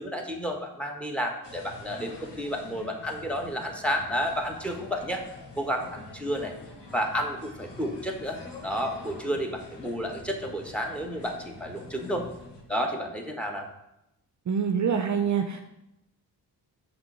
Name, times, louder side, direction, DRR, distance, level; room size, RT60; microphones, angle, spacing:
voice 1, 0.0-5.2 5.6-6.5 6.9-12.3 12.7-13.7, equal, 5° left, 3 dB, 1.1 m, -31 dB
sound 1, 1.4-12.6, left 2 dB, 75° left, 1.3 m, -46 dB
voice 2, 14.5-15.6, right 7 dB, 45° right, 6 dB, 0.5 m, -25 dB
6.0 x 3.2 x 5.5 m, 0.85 s
supercardioid pair, 50°, 42 cm